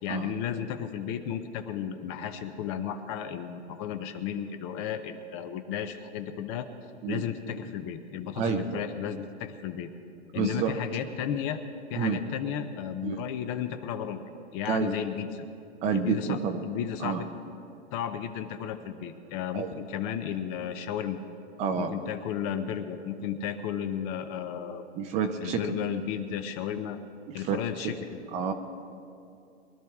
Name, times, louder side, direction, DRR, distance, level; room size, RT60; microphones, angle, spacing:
voice 1, 0.0-6.7 7.1-9.9 10.3-11.6 11.9-14.2 14.5-15.5 15.9-17.3 17.9-21.2 21.8-24.9 25.4-27.0 27.3-28.2, left 9 dB, 25° left, 9 dB, 0.7 m, -34 dB
voice 2, 8.4-8.7 10.3-10.7 12.0-12.2 13.0-13.2 14.7-14.9 15.8-16.6 17.0-17.2 19.5-19.7 21.6-21.9 25.0-25.6 27.4-27.6 28.3-28.5, right 7 dB, 20° right, 7 dB, 0.6 m, -28 dB
22.5 x 12.0 x 3.6 m, 2.6 s
hypercardioid pair, 145°, 34 cm